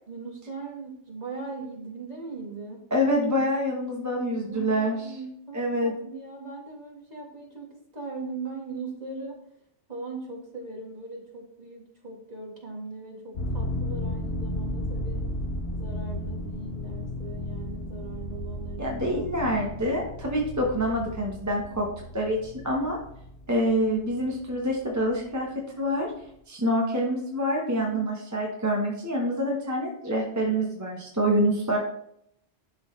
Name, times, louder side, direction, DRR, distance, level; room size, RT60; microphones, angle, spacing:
voice 1, 0.1-2.9 4.5-9.4 9.9-15.3 15.7-19.6 21.4-21.9 27.7-28.1, right 3 dB, 35° right, -1 dB, 1.7 m, -40 dB
voice 2, 2.9-5.0 5.5-5.9 18.8-21.9 22.1-23.0 23.5-25.5 25.8-26.1 26.5-31.8, equal, 15° right, -1 dB, 1.0 m, -26 dB
sound 1, 13.3-24.7 24.9-25.0, left 1 dB, 65° left, 1.2 m, -34 dB
11.0 x 4.0 x 3.1 m, 0.73 s
omnidirectional pair, 1.2 m